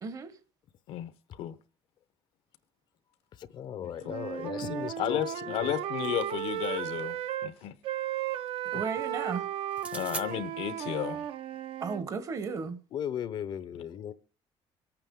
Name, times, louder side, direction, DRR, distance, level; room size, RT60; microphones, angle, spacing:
voice 1, 0.0-0.4 8.6-9.5 11.8-12.8, right 5 dB, 35° right, 1.0 m, -34 dB
voice 2, 0.9-1.6 3.8-3.9 4.4-7.8 9.9-11.3, left 12 dB, 75° left, 1.0 m, -34 dB
voice 3, 3.4-5.7 12.9-14.1, left 9 dB, 50° left, 0.7 m, -37 dB
Wind instrument woodwind instrument, 4.0-7.5 7.8-12.0, right 11 dB, 65° right, 0.8 m, -35 dB
sound 1, 5.7-7.0 9.7-10.3, right 3 dB, 15° right, 0.7 m, -43 dB
25.5 x 8.9 x 3.6 m
cardioid pair, 160°, 10 cm